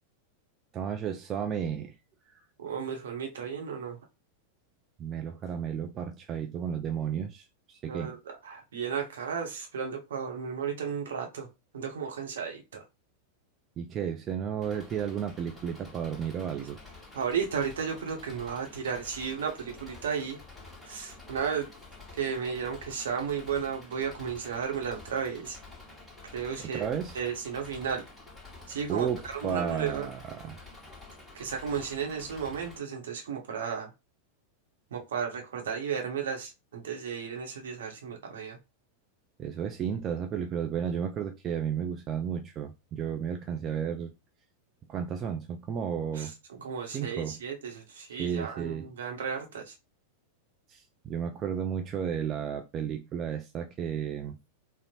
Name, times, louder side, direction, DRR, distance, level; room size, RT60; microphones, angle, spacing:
voice 1, 0.7-1.9 2.3-2.4 5.0-8.2 13.8-16.8 26.6-27.2 28.9-30.6 39.4-44.1 44.9-46.3 46.8-47.4 48.2-48.9 50.7-54.4, right 8 dB, 30° right, 0.3 m, -33 dB
voice 2, 2.6-4.0 7.9-8.2 8.4-11.5 11.7-12.8 17.1-20.4 20.8-21.7 22.1-25.6 26.3-26.9 27.1-28.0 28.7-30.1 31.3-33.9 34.9-38.6 46.1-46.3 46.6-49.7, right 7 dB, 65° right, 0.8 m, -34 dB
Engine, 14.6-32.8, left 2 dB, 5° left, 1.1 m, -49 dB
3.7 x 2.0 x 2.9 m
figure-of-eight pair, 90°, 0 cm